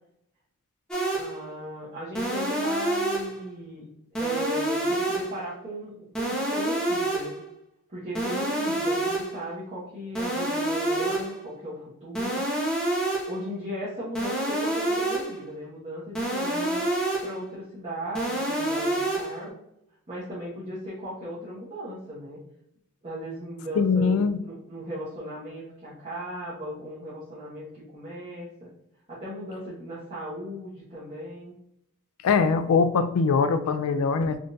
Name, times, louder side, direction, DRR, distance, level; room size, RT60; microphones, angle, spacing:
sound 1, 0.9-1.4 2.2-3.4 4.2-5.4 6.2-7.4 8.2-9.4 10.2-11.4 12.2-13.4 14.2-15.4 16.2-17.4 18.2-19.4, right 1 dB, 5° left, 0.5 m, -27 dB
voice 1, 1.2-3.9 4.1-7.3 7.9-12.4 13.2-16.9 17.2-19.6 20.1-22.4 23.0-28.7 29.1-31.5, equal, 30° right, -9 dB, 1.0 m, -37 dB
voice 2, 23.8-24.4 32.2-34.4, left 5 dB, 90° left, 11 dB, 0.3 m, -22 dB
3.6 x 2.4 x 2.6 m, 0.79 s
head